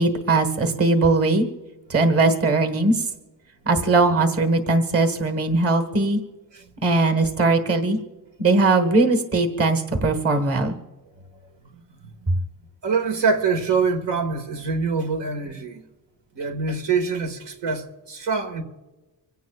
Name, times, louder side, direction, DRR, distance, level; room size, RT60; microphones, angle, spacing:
voice 1, 0.0-1.5 1.9-3.1 3.7-6.2 6.8-8.0 8.4-10.8, right 3 dB, 35° right, 1.5 m, -20 dB
voice 2, 12.8-15.8 16.4-18.6, right 5 dB, 80° right, 2.0 m, -25 dB
25.0 x 17.0 x 2.4 m
wide cardioid pair, 155°, 43 cm